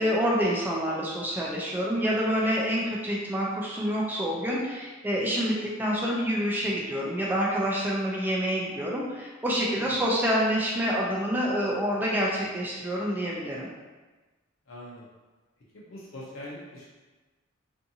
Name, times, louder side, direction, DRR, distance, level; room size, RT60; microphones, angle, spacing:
voice 1, 0.0-13.7, equal, 10° right, -4 dB, 0.3 m, -27 dB
voice 2, 14.7-15.1 15.7-16.9, left 1 dB, 70° left, -5 dB, 0.6 m, -43 dB
2.5 x 2.5 x 2.7 m, 1.3 s
head